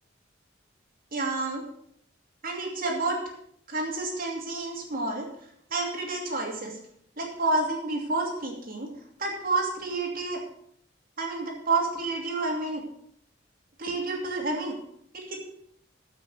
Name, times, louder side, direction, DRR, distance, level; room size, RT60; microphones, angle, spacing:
voice 1, 1.1-1.6 2.4-3.2 3.7-5.3 5.7-6.8 7.2-8.9 9.2-10.4 11.2-12.8 13.8-14.8 15.1-15.4, right 3 dB, 50° right, 1 dB, 2.7 m, -29 dB
14.5 x 6.1 x 6.5 m, 0.68 s
head